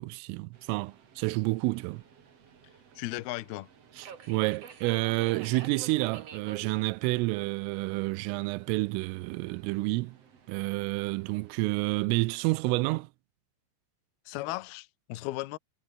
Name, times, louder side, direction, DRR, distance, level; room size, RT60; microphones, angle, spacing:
voice 1, 0.0-2.0 4.0-10.2 10.5-13.1, right 22 dB, 85° right, 3.2 m, -29 dB
Subway metro underground, 0.5-12.1, right 7 dB, 40° right, 2.6 m, -51 dB
voice 2, 3.0-3.7 14.3-15.6, left 18 dB, 85° left, 2.2 m, -36 dB
omnidirectional pair, 6.0 m